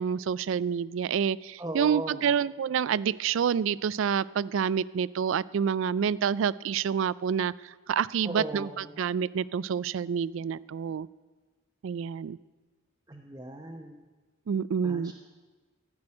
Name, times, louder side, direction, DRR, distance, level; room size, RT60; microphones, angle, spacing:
voice 1, 0.0-11.1 11.8-12.4 14.5-15.1, right 7 dB, 70° right, 20 dB, 0.3 m, -28 dB
voice 2, 1.6-2.3 8.2-8.9 13.1-14.0 14.8-15.1, right 1 dB, 15° right, -1 dB, 0.8 m, -37 dB
15.0 x 6.1 x 9.7 m, 1.3 s
head